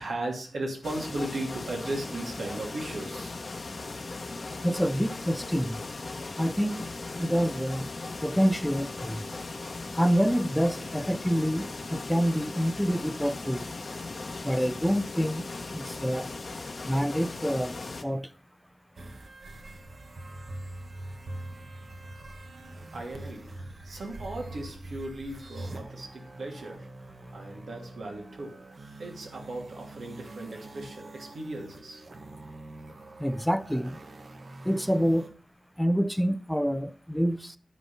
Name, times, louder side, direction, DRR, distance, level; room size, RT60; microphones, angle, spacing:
voice 1, 0.0-3.3 22.9-23.6 23.8-26.9 27.3-28.7 29.0-32.0, right 2 dB, 85° right, 2.7 m, -37 dB
sound 1, 0.8-18.0, left 3 dB, 45° left, 0.9 m, -38 dB
voice 2, 4.6-5.8 6.4-6.9 7.2-7.9 8.2-9.3 10.0-13.7 14.4-15.5 15.7-16.3 16.9-18.3 33.2-34.0 34.6-35.3 35.8-37.6, equal, ahead, 0.5 m, -27 dB
sound 2, 19.0-35.3, right 2 dB, 55° right, 1.2 m, -44 dB
11.5 x 4.4 x 5.5 m
wide cardioid pair, 110°, 0 cm